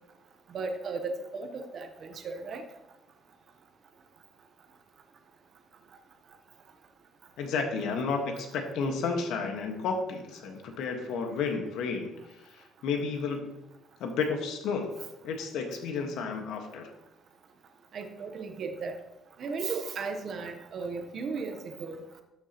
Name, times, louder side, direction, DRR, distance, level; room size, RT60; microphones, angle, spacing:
voice 1, 0.5-2.6 17.9-19.0 19.4-22.0, right 4 dB, 40° right, 6 dB, 0.9 m, -35 dB
voice 2, 7.4-13.5 14.0-15.0 15.2-16.9, left 5 dB, 75° left, 4 dB, 1.5 m, -32 dB
12.0 x 7.2 x 3.0 m, 0.94 s
cardioid pair, 165°, 0 cm